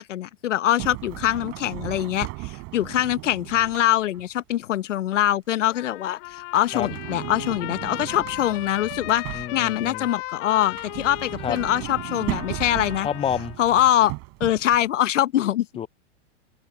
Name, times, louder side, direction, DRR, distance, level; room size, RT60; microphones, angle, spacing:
voice 1, 0.0-13.1 13.6-14.1 14.4-15.7, left 12 dB, 85° left, 1.1 m, -23 dB
Sliding door, 0.8-4.3 6.4-9.9 10.5-14.9, right 26 dB, 45° right, 6.8 m, -36 dB
Trumpet, 5.7-13.6, left 28 dB, 50° left, 7.4 m, -37 dB
voice 2, 9.3-10.1 11.4-11.6 13.0-13.6 15.8-15.9, left 9 dB, 15° left, 0.6 m, -28 dB
hypercardioid pair, 130°, 36 cm